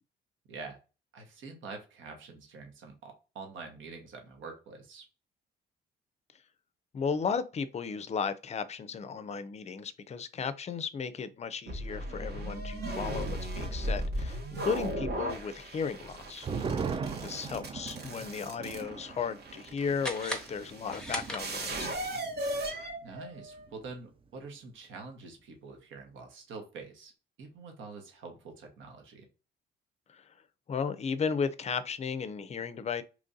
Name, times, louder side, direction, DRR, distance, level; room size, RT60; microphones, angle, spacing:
voice 1, 0.5-0.8 1.1-5.1 17.9-18.3 23.0-27.1 27.4-29.3, right 4 dB, 75° right, 1.1 m, -46 dB
voice 2, 6.9-16.5 17.1-21.9 30.1-30.2 30.7-33.0, left 6 dB, 35° left, 0.4 m, -35 dB
sound 1, 11.7-23.7, right 1 dB, 55° right, 1.1 m, -37 dB
sound 2, 15.9-22.8 23.1-23.2 23.6-24.0, right 5 dB, 30° right, 0.4 m, -40 dB
sound 3, 20.0-21.9, equal, 5° left, 0.8 m, -39 dB
3.0 x 2.5 x 3.8 m
cardioid pair, 90°, 20 cm